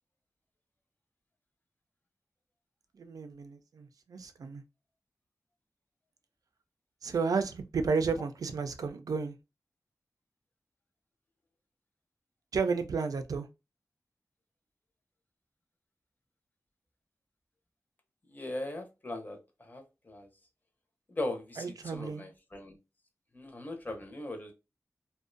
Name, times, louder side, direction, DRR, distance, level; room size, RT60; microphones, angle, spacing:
voice 1, 2.9-4.6 7.0-9.4 12.5-13.5 21.6-22.3, right 5 dB, 90° right, 0.3 m, -32 dB
voice 2, 18.3-20.3 21.1-22.8 23.3-24.5, left 1 dB, 30° left, 0.6 m, -39 dB
2.5 x 2.1 x 2.5 m
wide cardioid pair, 70°, 6 cm